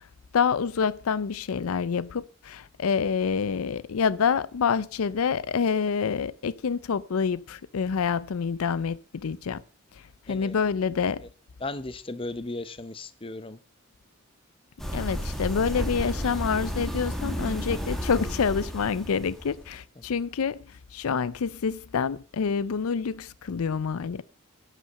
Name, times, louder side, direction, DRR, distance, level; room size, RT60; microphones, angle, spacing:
voice 1, 0.3-9.6 10.3-11.3 14.9-24.2, left 6 dB, 80° left, 0.5 m, -27 dB
voice 2, 11.6-13.6 20.0-20.1, left 2 dB, 25° left, 0.8 m, -36 dB
sound 1, 14.8-19.7, equal, ahead, 1.8 m, -32 dB
11.5 x 8.3 x 6.5 m
head